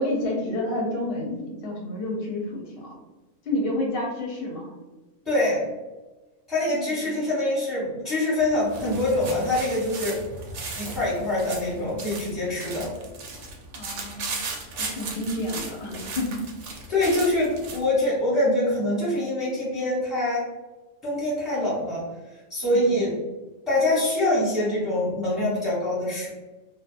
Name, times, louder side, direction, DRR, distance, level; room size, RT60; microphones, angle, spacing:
voice 1, 0.0-3.0 3.4-4.7 7.0-7.2 13.7-14.4 14.8-16.4 22.7-23.1, left 1 dB, 60° left, -1 dB, 0.7 m, -29 dB
voice 2, 5.2-5.7 6.5-10.2 10.8-12.9 16.9-20.4 21.0-22.0 22.5-23.1 23.7-26.3, left 1 dB, ahead, -7 dB, 0.8 m, -24 dB
sound 1, 8.4-17.9, right 3 dB, 70° right, 0.8 m, -36 dB
2.7 x 2.1 x 2.4 m, 1.2 s
omnidirectional pair, 1.4 m